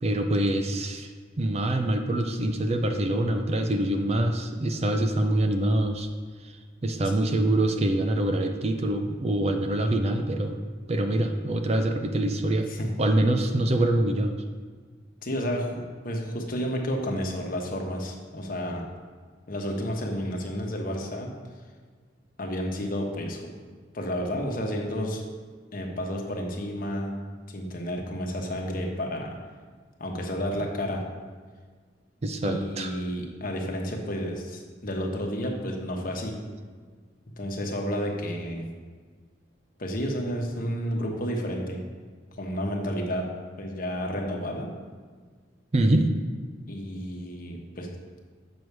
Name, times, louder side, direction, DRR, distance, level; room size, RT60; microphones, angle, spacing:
voice 1, 0.0-1.1 1.4-6.1 6.8-10.6 10.9-12.7 13.0-14.4 32.2-32.9 45.7-46.1, right 1 dB, 35° right, 5 dB, 0.5 m, -25 dB
voice 2, 12.7-13.0 15.2-18.8 19.5-21.3 22.4-23.5 23.9-25.2 25.7-27.2 27.5-29.4 30.0-31.0 32.4-36.4 37.4-38.7 39.8-41.8 42.4-43.3 43.6-44.7 46.7-47.9, equal, 50° left, 1 dB, 1.1 m, -31 dB
6.9 x 6.1 x 4.7 m, 1.5 s
head